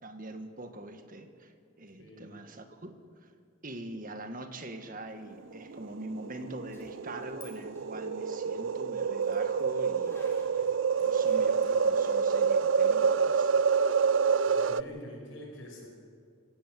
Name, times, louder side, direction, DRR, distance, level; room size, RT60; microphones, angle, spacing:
voice 1, 0.0-3.3 3.6-10.4 11.0-13.6, right 1 dB, 40° right, 7 dB, 1.7 m, -43 dB
voice 2, 1.9-2.3 14.5-15.9, left 1 dB, 70° left, 0 dB, 5.6 m, -46 dB
sound 1, 5.7-14.8, right 6 dB, 65° right, 0.4 m, -27 dB
Zipper (clothing), 6.6-7.5 7.8-12.1, left 2 dB, 15° left, 4.3 m, -56 dB
27.0 x 15.5 x 7.7 m, 2.1 s
head